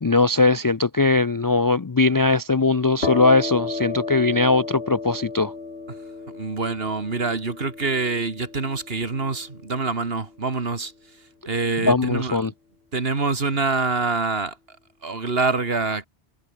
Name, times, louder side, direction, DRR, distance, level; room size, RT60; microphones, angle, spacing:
voice 1, 0.0-5.5 11.8-12.5, left 3 dB, 35° left, 0.3 m, -20 dB
sound 1, 3.0-10.5, left 4 dB, 85° left, 2.5 m, -34 dB
voice 2, 6.3-10.9 11.5-12.5 12.9-14.6 15.0-16.1, right 4 dB, 70° right, 2.4 m, -25 dB
omnidirectional pair, 1.0 m